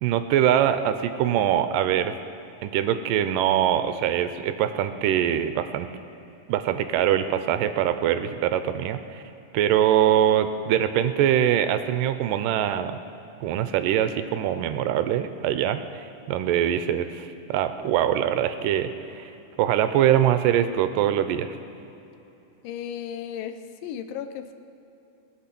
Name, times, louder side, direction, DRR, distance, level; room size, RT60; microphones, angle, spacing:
voice 1, 0.0-2.1 2.6-5.9 6.5-9.2 9.5-13.0 13.4-19.3 19.6-21.6, right 10 dB, 80° right, 10 dB, 2.2 m, -23 dB
voice 2, 22.6-24.5, left 9 dB, 80° left, 9 dB, 2.3 m, -35 dB
20.0 x 8.1 x 6.0 m, 3.0 s
omnidirectional pair, 3.9 m